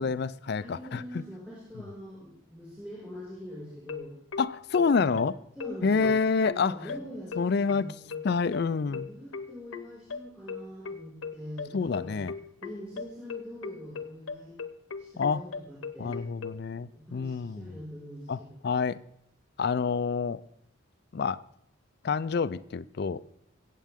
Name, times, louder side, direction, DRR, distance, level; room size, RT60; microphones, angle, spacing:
voice 1, 0.0-1.2 4.4-5.3 5.8-6.8 7.4-7.9 8.2-9.1 11.7-12.3 15.2-15.4 16.0-17.7 18.3-19.0 19.6-20.4 21.1-21.4 22.0-23.2, left 5 dB, 50° left, 0.4 m, -28 dB
voice 2, 0.6-4.2 4.8-5.1 5.6-6.2 6.6-7.4 7.7-8.1 8.8-12.2 12.6-14.5 15.0-16.3 16.9-18.6, equal, 10° right, 5.4 m, -44 dB
sound 1, 3.9-16.6, left 5 dB, 75° left, 0.8 m, -38 dB
22.0 x 8.4 x 3.6 m
head